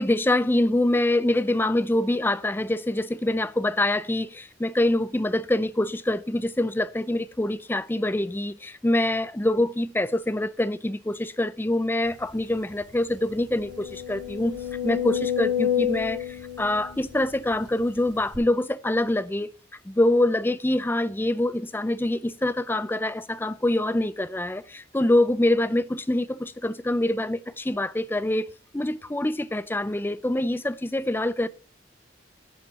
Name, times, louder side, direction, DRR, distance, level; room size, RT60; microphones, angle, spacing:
voice 1, 0.0-19.5 19.8-31.5, left 1 dB, 10° left, 0.4 m, -25 dB
sound 1, 12.3-12.4 12.8-12.9 13.4-17.7 18.3-18.4, left 9 dB, 65° right, 3.4 m, -29 dB
11.0 x 5.4 x 6.8 m
head